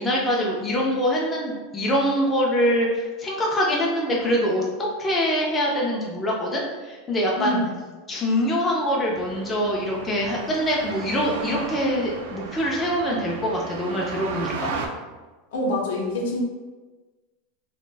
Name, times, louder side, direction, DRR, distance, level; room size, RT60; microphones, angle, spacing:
voice 1, 0.0-4.6 5.0-7.6 8.1-14.7, equal, 15° left, -3 dB, 0.3 m, -24 dB
voice 2, 7.4-7.7 15.5-16.4, left 1 dB, 75° left, 0 dB, 0.6 m, -26 dB
sound 1, 9.1-14.9, right 5 dB, 70° right, 0.3 m, -35 dB
2.4 x 2.0 x 3.2 m, 1.3 s
supercardioid pair, 175°, 0 cm